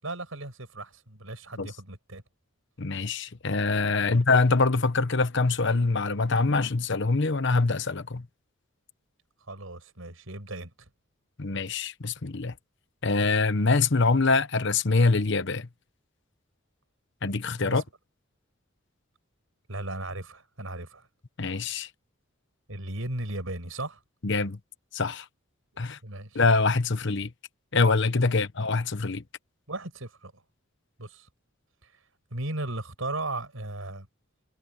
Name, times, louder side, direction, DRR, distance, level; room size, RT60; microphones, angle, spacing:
voice 1, 0.0-2.2 4.0-4.3 9.5-10.9 17.7-17.8 19.7-21.1 22.7-24.0 26.0-26.4 28.2-28.4 29.7-30.4 31.0-31.3 31.8-31.9 32.3-34.1, right 2 dB, 75° right, 5.6 m, -36 dB
voice 2, 2.8-8.3 11.4-12.5 13.0-15.7 17.2-17.8 21.4-21.9 24.2-24.6 24.9-25.2 25.8-26.0 26.3-27.3 27.7-29.2, left 3 dB, 60° left, 1.1 m, -24 dB
head